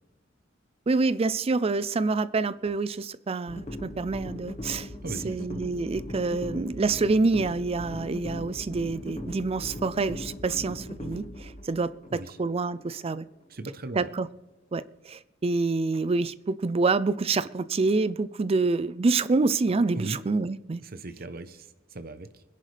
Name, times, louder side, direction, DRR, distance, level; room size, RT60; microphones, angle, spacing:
voice 1, 0.9-4.9 5.2-13.3 14.0-14.3 14.7-20.8, right 3 dB, 30° right, 0.4 m, -27 dB
sound 1, 3.5-13.5, left 1 dB, 35° left, 1.4 m, -39 dB
voice 2, 5.0-5.5 12.1-12.4 13.5-14.1 19.9-20.3 20.8-22.4, right 2 dB, 50° right, 0.8 m, -38 dB
24.0 x 10.5 x 3.4 m
head